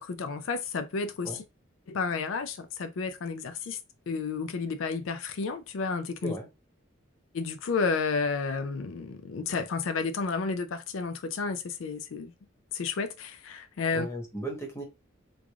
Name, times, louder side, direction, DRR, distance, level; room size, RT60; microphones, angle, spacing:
voice 1, 0.0-1.4 1.9-3.8 4.1-6.3 7.3-12.3 12.7-14.1, left 4 dB, 90° left, 0.4 m, -31 dB
voice 2, 13.9-14.8, right 1 dB, 15° left, 1.0 m, -36 dB
3.5 x 3.3 x 2.3 m
head